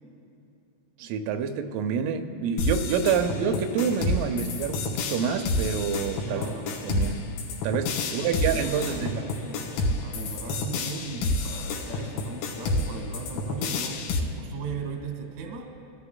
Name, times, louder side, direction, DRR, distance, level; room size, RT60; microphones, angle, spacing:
voice 1, 1.0-6.4 6.8-7.3 7.6-9.3, right 6 dB, 85° right, 7 dB, 3.3 m, -27 dB
sound 1, 2.6-14.2, left 2 dB, 80° left, 4.0 m, -29 dB
voice 2, 6.2-6.7 8.2-14.1 14.4-15.7, right 4 dB, 65° right, 2 dB, 2.0 m, -38 dB
24.0 x 14.5 x 2.2 m, 2.7 s
omnidirectional pair, 5.8 m